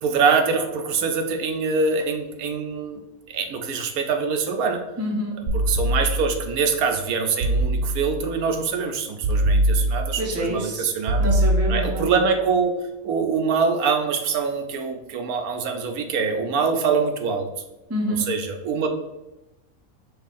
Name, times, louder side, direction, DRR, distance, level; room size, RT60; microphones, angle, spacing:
voice 1, 0.0-3.0 3.3-4.8 5.5-11.2 11.7-12.8 13.0-17.5 18.3-18.9, right 5 dB, 85° right, 5 dB, 1.1 m, -24 dB
voice 2, 5.0-5.4 10.2-10.9 11.2-12.1 17.9-18.3, equal, 15° right, -1 dB, 0.5 m, -27 dB
sound 1, 5.5-6.5 7.4-8.3 9.2-10.3 11.1-12.1, right 1 dB, 65° right, 0.7 m, -22 dB
5.5 x 2.4 x 4.1 m, 0.98 s
omnidirectional pair, 1.5 m